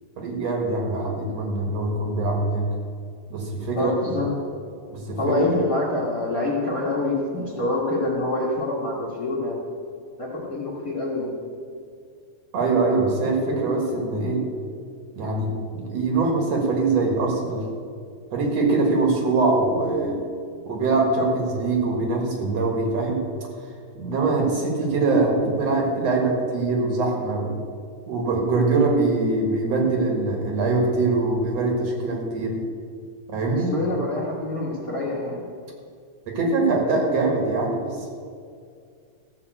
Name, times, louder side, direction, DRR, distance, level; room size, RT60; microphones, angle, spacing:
voice 1, 0.2-2.6 3.3-3.9 4.9-5.4 12.5-14.4 15.2-17.6 18.3-20.2 20.7-23.2 24.0-27.5 28.1-32.6 33.3-33.7 36.3-37.8, right 3 dB, 60° right, 0 dB, 2.8 m, -23 dB
voice 2, 3.7-4.3 5.2-9.6 10.2-11.3 33.7-35.4, left 2 dB, 35° left, -5 dB, 1.8 m, -26 dB
14.5 x 5.8 x 7.9 m, 2.2 s
omnidirectional pair, 3.4 m